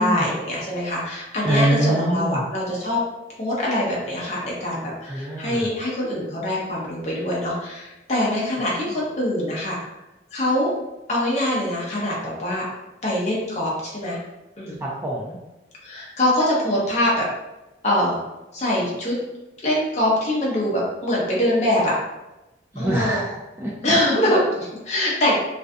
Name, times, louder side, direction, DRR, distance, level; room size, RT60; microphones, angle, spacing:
voice 1, 0.0-3.0 3.4-9.8 10.3-10.7 11.1-12.7 13.0-14.2 14.6-14.8 15.8-17.3 17.8-18.2 18.5-19.1 19.6-21.9 22.8-23.2 23.8-25.4, left 1 dB, 35° left, -4 dB, 0.6 m, -23 dB
voice 2, 1.4-2.4 5.1-5.7 14.8-15.4 22.7-23.7, right 1 dB, 15° right, -6 dB, 0.3 m, -24 dB
2.5 x 2.3 x 2.5 m, 1.0 s
head